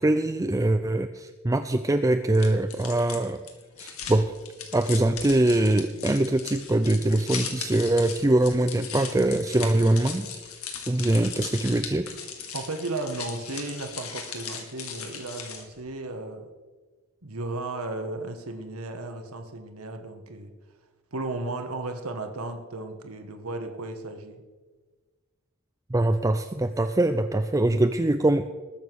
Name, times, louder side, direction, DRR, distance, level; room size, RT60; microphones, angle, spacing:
voice 1, 0.0-3.4 3.8-4.2 4.7-10.3 10.9-12.1 25.9-28.4, right 1 dB, 15° right, 8 dB, 0.5 m, -23 dB
sound 1, 2.3-15.8, left 7 dB, 85° left, 2.2 m, -38 dB
voice 2, 12.5-16.5 17.2-20.5 21.1-24.4, right 2 dB, 90° right, 6 dB, 1.6 m, -35 dB
20.5 x 7.2 x 6.3 m, 1.4 s
head